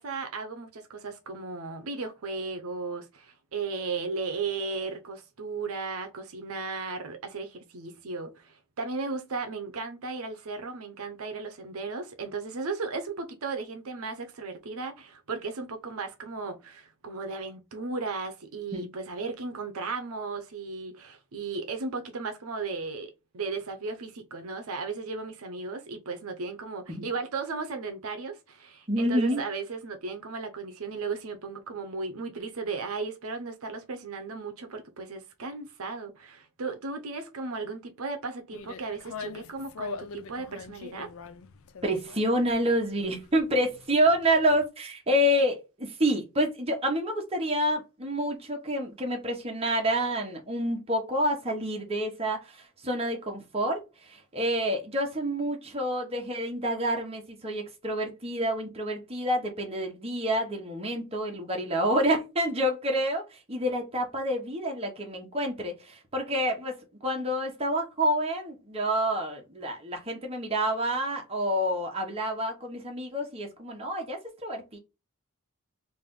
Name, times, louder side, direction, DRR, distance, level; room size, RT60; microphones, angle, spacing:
voice 1, 0.0-41.1, right 4 dB, 70° right, 0.7 m, -35 dB
voice 2, 28.9-29.4 41.8-66.8 67.0-74.8, equal, 25° right, 1.0 m, -28 dB
sound 1, 38.5-44.7, left 5 dB, 65° left, 0.4 m, -43 dB
3.4 x 2.6 x 3.6 m
head